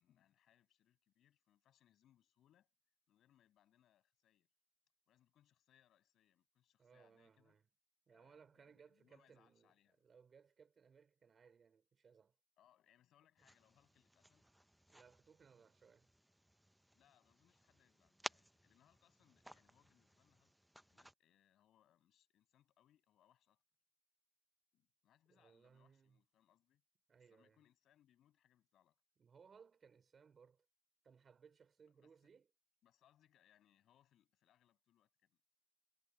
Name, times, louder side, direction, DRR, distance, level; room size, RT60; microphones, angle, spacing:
voice 1, 0.0-2.7 3.1-4.5 5.1-7.6 8.1-10.0 12.6-14.5 16.9-20.5 20.9-23.6 24.7-26.8 27.3-29.0 32.0-32.1 32.8-35.4, left 11 dB, 75° left, 7.6 m, -75 dB
voice 2, 6.8-7.6 8.1-9.7 10.0-12.3 14.9-16.1 25.3-26.2 27.1-27.6 29.2-30.7 31.0-32.5, right 6 dB, 45° right, 4.5 m, -66 dB
sound 1, 13.4-21.1, right 1 dB, 5° right, 0.7 m, -56 dB
cardioid pair, 90°, 0 cm